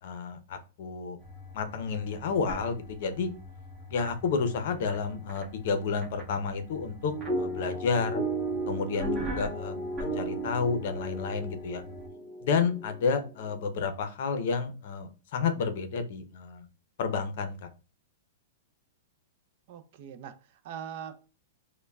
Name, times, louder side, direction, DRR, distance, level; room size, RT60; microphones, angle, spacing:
voice 1, 0.0-1.2 1.5-3.3 3.9-8.2 8.7-11.8 12.4-16.7 17.0-17.7, left 5 dB, 50° left, 0.6 m, -31 dB
sound 1, 1.2-12.1, left 1 dB, 15° right, 1.3 m, -43 dB
sound 2, 7.1-13.3, right 2 dB, 10° left, 0.9 m, -34 dB
voice 2, 9.2-9.7 19.7-21.3, right 8 dB, 40° right, 0.4 m, -43 dB
5.4 x 2.2 x 2.3 m
supercardioid pair, 170°, 0 cm